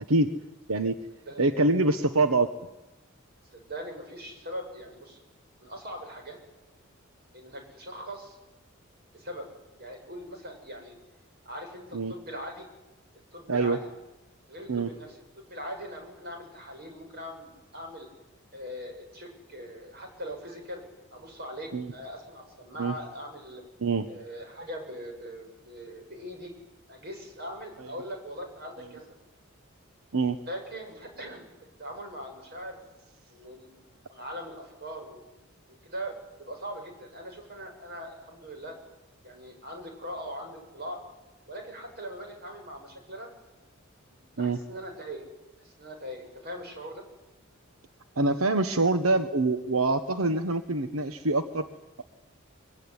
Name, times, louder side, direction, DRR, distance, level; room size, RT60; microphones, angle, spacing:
voice 1, 0.7-1.0 1.4-2.5 11.9-12.1 13.5-13.8 14.7-14.9 21.7-21.9 22.8-22.9 23.8-24.1 27.8-27.9 30.1-30.4 44.4-44.6 48.2-51.7, right 2 dB, 85° right, 9 dB, 1.2 m, -25 dB
voice 2, 3.5-5.2 5.6-6.4 7.3-8.4 9.1-9.5 9.8-11.0 11.4-12.7 13.3-13.8 14.5-18.1 18.5-20.8 21.1-23.6 24.1-26.5 26.9-29.2 30.5-31.5 31.8-32.8 33.3-35.2 35.7-38.8 39.2-41.0 41.5-43.3 44.1-45.3 45.6-47.0, equal, 50° right, 3 dB, 7.5 m, -41 dB
24.0 x 22.5 x 9.8 m, 0.99 s
head